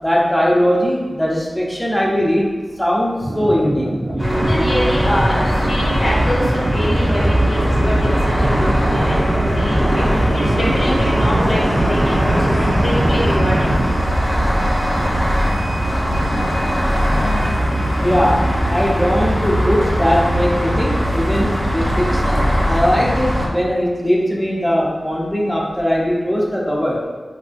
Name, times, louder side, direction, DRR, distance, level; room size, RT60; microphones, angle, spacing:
voice 1, 0.0-2.5 2.8-3.9 18.0-27.0, equal, 5° left, -4 dB, 0.5 m, -19 dB
sound 1, 3.2-13.8, right 1 dB, 60° right, 0.4 m, -24 dB
sound 2, 4.2-23.5, equal, 25° right, 0.7 m, -20 dB
voice 2, 4.4-13.7, left 1 dB, 80° left, -5 dB, 0.7 m, -25 dB
sound 3, 6.9-13.8, equal, 90° right, 0.9 m, -22 dB
3.5 x 2.3 x 2.4 m, 1.3 s
wide cardioid pair, 80°, 0 cm